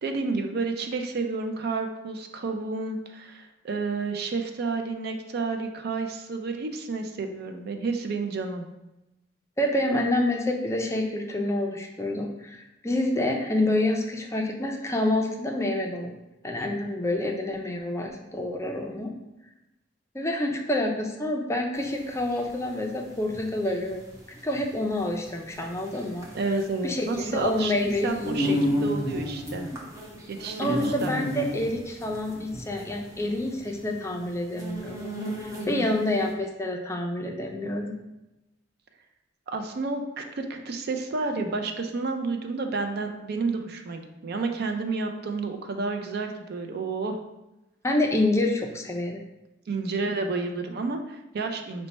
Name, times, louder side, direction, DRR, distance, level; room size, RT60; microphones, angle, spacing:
voice 1, 0.0-8.7 26.3-29.7 30.3-31.2 35.7-35.8 39.5-47.2 49.7-51.9, right 3 dB, 55° right, 5 dB, 0.4 m, -30 dB
voice 2, 9.6-16.1 16.4-19.1 20.1-24.0 24.4-26.3 26.8-28.6 30.6-35.1 35.4-37.9 47.8-49.2, left 1 dB, 15° left, 1 dB, 0.4 m, -28 dB
sound 1, 21.8-36.0, left 1 dB, 20° right, 0.7 m, -32 dB
4.3 x 2.1 x 4.0 m, 0.96 s
head